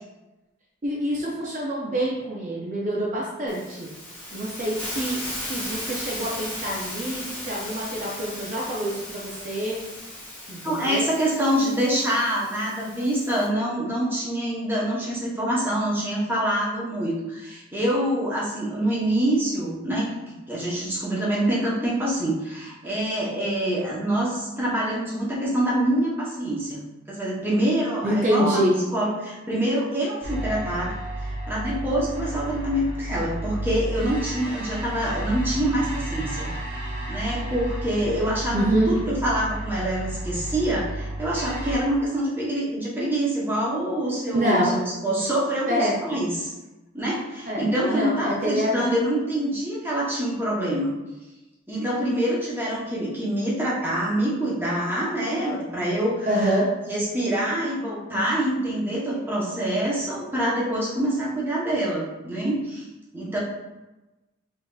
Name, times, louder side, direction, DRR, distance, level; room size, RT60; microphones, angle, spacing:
voice 1, 0.8-3.9 4.3-5.2 5.5-9.8 10.5-11.1 11.6-11.7 28.0-28.8 38.5-38.9 44.3-44.8 45.7-45.9 47.5-48.9 56.3-56.7, equal, 40° right, -4 dB, 0.5 m, -26 dB
Hiss, 3.5-13.5, left 1 dB, 10° left, 1.2 m, -36 dB
voice 2, 10.6-20.1 20.5-28.6 28.9-30.9 31.5-36.5 37.1-46.5 46.9-50.9 51.7-56.5 56.9-62.9 63.1-63.4, right 1 dB, 10° right, -6 dB, 0.8 m, -25 dB
sound 1, 30.2-41.8, right 1 dB, 55° right, 1.1 m, -32 dB
5.5 x 2.7 x 2.3 m, 1.1 s
head